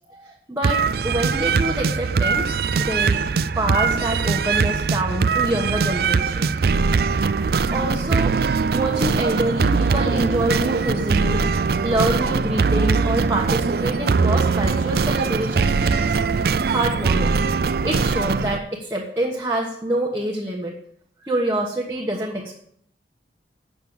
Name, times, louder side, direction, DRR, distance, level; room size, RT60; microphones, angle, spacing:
voice 1, 0.0-3.2 3.6-6.8 7.1-7.2 7.7-8.4 8.7-11.5 11.8-17.3 17.8-20.8 21.2-22.6, right 1 dB, 15° right, -3 dB, 1.3 m, -26 dB
sound 1, 0.6-18.6, right 5 dB, 55° right, 0.4 m, -21 dB
8.6 x 7.0 x 7.8 m, 0.66 s
head